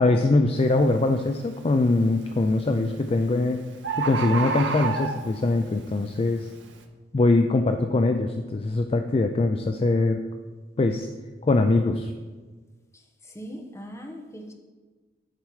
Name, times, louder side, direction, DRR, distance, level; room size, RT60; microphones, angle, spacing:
voice 1, 0.0-3.6 4.0-6.5 7.1-10.2 10.8-11.1 11.4-12.1, left 2 dB, 30° left, 7 dB, 0.3 m, -22 dB
Bird, 0.6-0.8 1.4-1.8 2.8-2.9 3.2-3.3 3.5-3.6 3.8-5.6 6.1-6.2, right 5 dB, 75° right, 0.7 m, -28 dB
voice 2, 12.9-14.5, equal, 15° left, 2 dB, 1.0 m, -40 dB
10.5 x 4.4 x 4.7 m, 1.4 s
head